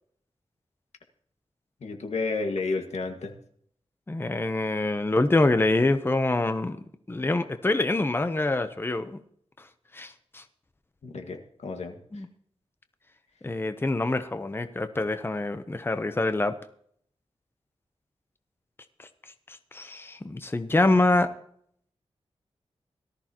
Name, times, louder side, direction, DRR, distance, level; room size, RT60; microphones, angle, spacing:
voice 1, 1.8-3.3 11.0-12.0, left 3 dB, 85° left, 4 dB, 1.8 m, -31 dB
voice 2, 4.1-6.8 7.1-9.2 9.9-10.4 12.1-12.3 13.4-16.5 19.0-19.1 19.5-21.3, left 2 dB, 20° left, 10 dB, 0.8 m, -25 dB
18.5 x 13.5 x 3.0 m, 0.65 s
wide cardioid pair, 125°, 11 cm